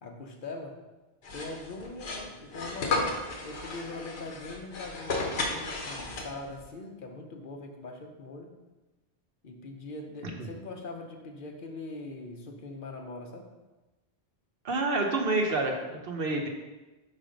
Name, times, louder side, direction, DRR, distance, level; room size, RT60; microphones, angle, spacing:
voice 1, 0.0-0.8 1.3-8.5 9.4-13.5, left 2 dB, 55° left, 3 dB, 0.8 m, -42 dB
sound 1, 1.2-6.6, left 3 dB, 70° left, 1.1 m, -34 dB
voice 2, 14.6-16.5, right 2 dB, 60° right, 2 dB, 0.9 m, -28 dB
4.9 x 4.2 x 5.0 m, 1.1 s
omnidirectional pair, 1.1 m